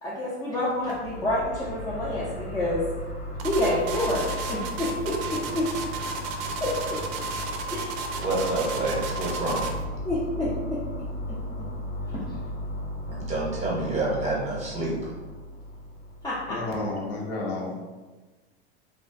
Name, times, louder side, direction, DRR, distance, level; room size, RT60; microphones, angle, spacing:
voice 1, 0.0-2.8 3.4-5.7 6.6-7.0 7.7-7.9 10.1-10.8 11.3-11.4 16.2-16.6, left 1 dB, 10° left, -8 dB, 0.4 m, -28 dB
Space danger, 0.8-17.0, left 1 dB, 85° left, 1.3 m, -36 dB
sound 1, 3.4-9.8, right 4 dB, 60° right, 0.4 m, -33 dB
voice 2, 8.2-9.7 13.1-15.1, right 2 dB, 20° right, -4 dB, 0.7 m, -28 dB
voice 3, 16.5-17.7, left 2 dB, 60° left, -1 dB, 0.7 m, -31 dB
2.4 x 2.1 x 2.4 m, 1.3 s
hypercardioid pair, 100°, 32 cm